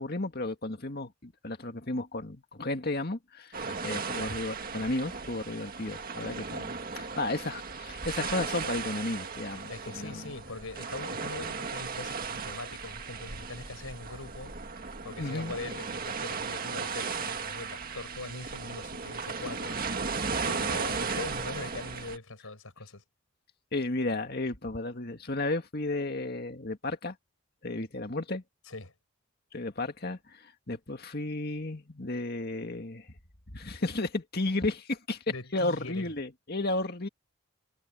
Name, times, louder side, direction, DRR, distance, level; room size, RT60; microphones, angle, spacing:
voice 1, 0.0-10.2 15.2-15.5 23.7-27.2 27.6-28.4 29.5-33.1 33.5-35.2 35.5-37.1, left 2 dB, 50° left, 2.1 m, -33 dB
sound 1, 3.5-22.2, right 5 dB, 45° right, 1.9 m, -36 dB
voice 2, 9.7-14.7 15.0-23.0 28.7-28.9 35.3-36.1, left 2 dB, 85° left, 4.7 m, -42 dB
head